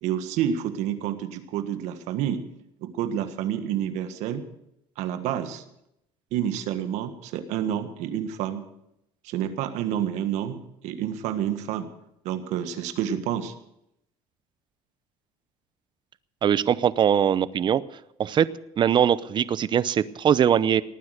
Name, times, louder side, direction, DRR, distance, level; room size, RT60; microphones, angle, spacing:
voice 1, 0.0-2.4 2.8-4.4 5.0-5.6 6.3-8.6 9.2-11.9 12.2-13.5, right 10 dB, 75° right, 9 dB, 1.6 m, -29 dB
voice 2, 16.4-17.8 18.2-18.5 18.8-20.8, right 9 dB, 40° right, 17 dB, 0.7 m, -21 dB
18.5 x 9.5 x 6.5 m, 0.80 s
supercardioid pair, 100°, 12 cm